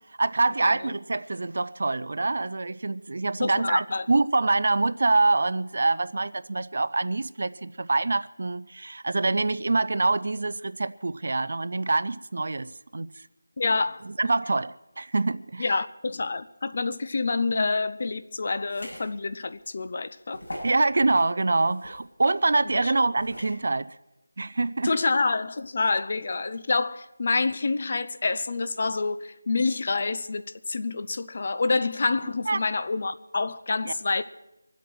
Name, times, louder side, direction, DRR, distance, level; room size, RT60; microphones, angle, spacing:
voice 1, 0.2-13.1 14.0-15.8 20.6-23.9 24.4-24.9 32.5-32.6, right 3 dB, 45° right, 0.4 m, -25 dB
voice 2, 3.4-4.0 13.6-14.0 15.6-20.4 22.8-22.9 24.8-34.2, left 3 dB, 30° left, 0.5 m, -27 dB
sound 1, 18.7-19.1 19.6-19.7 20.3-20.8 21.7-22.0 23.2-23.6, left 1 dB, 60° left, 7.1 m, -39 dB
24.0 x 8.1 x 6.1 m
figure-of-eight pair, 175°, 0 cm